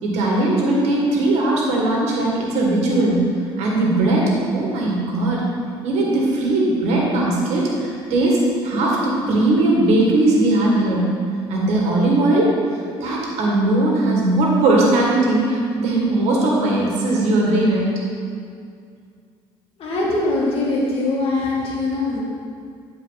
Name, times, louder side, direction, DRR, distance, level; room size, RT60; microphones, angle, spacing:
voice 1, 0.0-3.3 3.6-5.4 5.8-11.1 11.5-12.5 13.0-17.9, right 2 dB, 75° right, -2 dB, 1.9 m, -19 dB
voice 2, 19.8-22.2, left 2 dB, 55° left, -4 dB, 2.2 m, -22 dB
11.0 x 4.7 x 4.1 m, 2.2 s
supercardioid pair, 85°, 11 cm